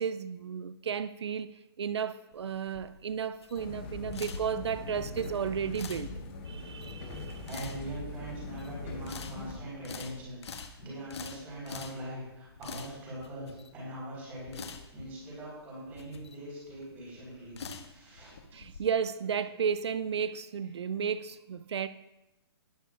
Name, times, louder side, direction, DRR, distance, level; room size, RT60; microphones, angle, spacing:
voice 1, 0.0-1.5 1.8-6.1 6.5-7.5 18.5-21.9, right 7 dB, 90° right, 0.5 m, -33 dB
sound 1, 2.3-18.8, left 5 dB, 80° left, 1.4 m, -46 dB
sound 2, 3.5-9.6, left 2 dB, 25° left, 1.5 m, -42 dB
voice 2, 7.4-18.4 18.7-18.8, right 1 dB, 15° right, 4.6 m, -42 dB
18.0 x 10.0 x 2.5 m
hypercardioid pair, 170°, 14 cm